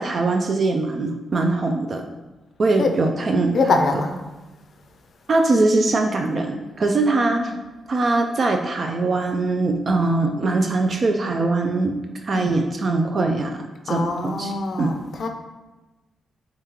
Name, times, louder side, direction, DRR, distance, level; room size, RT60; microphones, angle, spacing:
voice 1, 0.0-2.0 2.6-3.6 5.3-7.5 7.9-11.9 12.2-14.5 14.8-14.9, right 3 dB, 45° right, 3 dB, 0.3 m, -22 dB
voice 2, 3.5-4.2 7.3-7.6 12.3-12.5 13.9-15.3, left 3 dB, 55° left, 5 dB, 0.4 m, -24 dB
3.6 x 3.5 x 2.9 m, 1.1 s
cardioid pair, 115°, 0 cm